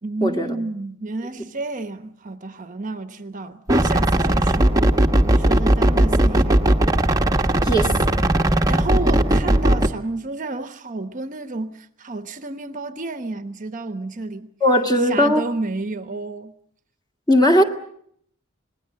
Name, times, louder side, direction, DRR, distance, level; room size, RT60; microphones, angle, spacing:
voice 1, 0.0-4.8 5.2-6.6 7.8-7.9 8.7-14.5 14.9-16.5, right 2 dB, 40° right, 1.0 m, -31 dB
sound 1, 3.7-9.9, right 1 dB, 15° right, 1.1 m, -18 dB
voice 2, 14.6-15.4 17.3-17.6, equal, 20° left, 2.1 m, -17 dB
26.5 x 20.0 x 7.6 m
head